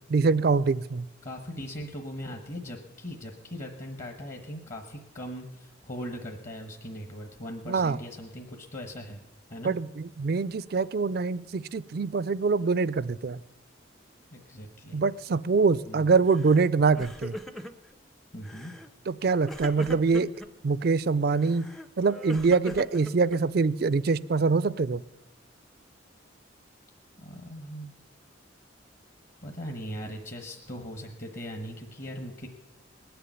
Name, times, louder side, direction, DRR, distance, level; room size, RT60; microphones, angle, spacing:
voice 1, 0.1-1.1 7.7-8.0 9.6-13.4 14.9-17.4 19.1-20.3 20.6-21.7 22.0-25.0, right 4 dB, 50° right, 18 dB, 0.4 m, -24 dB
voice 2, 1.2-9.2 9.5-9.8 14.3-15.0 15.9-16.1 18.3-18.7 27.2-27.9 29.4-32.5, equal, 40° left, 3 dB, 1.2 m, -39 dB
Crying sobbing, 16.3-16.6 16.9-17.9 18.4-18.9 19.5-20.5 21.4-23.6, left 1 dB, ahead, 0.5 m, -40 dB
20.0 x 6.9 x 9.1 m, 1.0 s
head